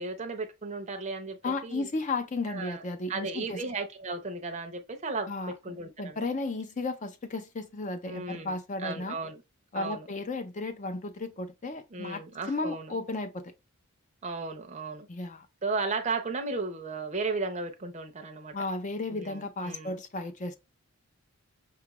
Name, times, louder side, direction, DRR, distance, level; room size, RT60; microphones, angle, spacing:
voice 1, 0.0-1.9 2.5-2.8 3.1-6.2 8.1-9.4 9.7-10.1 11.9-12.9 14.2-15.1 15.6-18.5 19.1-20.0, right 3 dB, 30° right, 0.6 m, -35 dB
voice 2, 1.4-3.6 5.3-5.5 6.0-9.2 9.7-13.4 15.1-15.5 18.5-20.6, left 3 dB, 35° left, 0.5 m, -34 dB
5.8 x 2.4 x 2.9 m
head